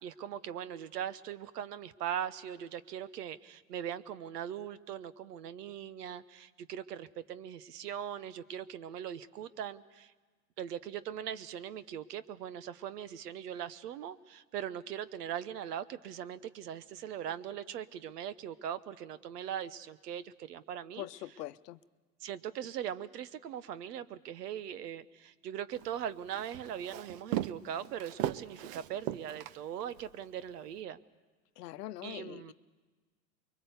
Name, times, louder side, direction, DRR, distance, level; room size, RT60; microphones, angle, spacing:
voice 1, 0.0-10.1 10.6-21.1 22.2-31.0 32.0-32.5, right 9 dB, 80° right, 15 dB, 1.1 m, -40 dB
voice 2, 21.0-21.8 31.6-32.5, left 14 dB, 80° left, 14 dB, 0.9 m, -43 dB
Walk footsteps, 25.7-30.1, right 13 dB, 60° right, 0.9 m, -38 dB
24.5 x 22.5 x 8.1 m, 1.4 s
hypercardioid pair, 110°, 47 cm